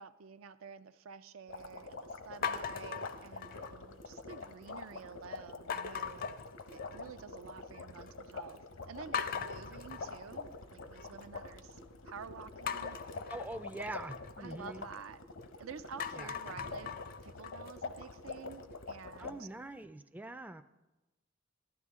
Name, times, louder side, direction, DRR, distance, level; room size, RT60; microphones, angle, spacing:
voice 1, 0.0-6.3 6.7-13.0 14.4-15.2 15.6-19.5, right 6 dB, 85° right, 12 dB, 0.5 m, -50 dB
sound 1, 1.5-19.3, left 3 dB, 70° left, 0.8 m, -46 dB
sound 2, 2.4-3.9 4.3-4.8 5.7-7.2 7.5-8.1 8.5-8.6 9.1-11.3 12.7-15.5 15.8-18.8, left 7 dB, 45° left, 0.5 m, -41 dB
sound 3, 8.7-14.6, left 2 dB, 85° left, 1.3 m, -60 dB
voice 2, 13.3-14.8 16.2-16.3 19.2-20.6, right 2 dB, 10° right, 9 dB, 0.3 m, -43 dB
14.5 x 12.0 x 3.7 m, 1.1 s
head